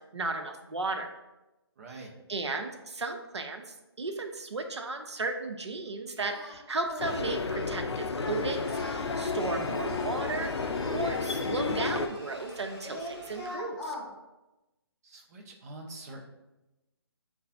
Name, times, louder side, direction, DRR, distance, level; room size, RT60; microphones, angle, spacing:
voice 1, 0.1-1.1 1.9-14.0, right 3 dB, 85° right, 4 dB, 0.5 m, -35 dB
voice 2, 1.8-2.1 15.0-16.3, right 2 dB, 35° right, 0 dB, 0.7 m, -45 dB
Singing, 6.2-6.5 6.9-7.3 7.5-7.8 8.6-10.2 10.8-12.6 12.8-14.1, left 1 dB, 20° left, 1.5 m, -41 dB
sound 1, 7.0-12.1, left 4 dB, 75° left, 0.4 m, -32 dB
sound 2, 8.2-13.6, left 1 dB, 45° left, 1.0 m, -51 dB
6.6 x 2.3 x 2.4 m, 1.0 s
figure-of-eight pair, 145°, 14 cm